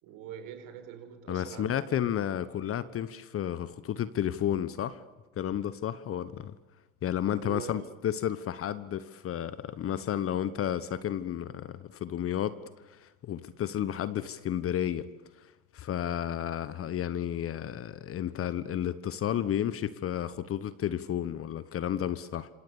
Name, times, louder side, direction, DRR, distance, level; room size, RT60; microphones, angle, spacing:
voice 1, 0.0-2.2 7.4-7.9, right 9 dB, 50° right, 8 dB, 5.0 m, -44 dB
voice 2, 1.3-5.0 5.4-6.5 7.0-12.6 12.9-15.1 15.7-22.5, left 10 dB, 30° left, 15 dB, 1.3 m, -32 dB
27.0 x 26.5 x 7.2 m, 1.1 s
hypercardioid pair, 90°, 43 cm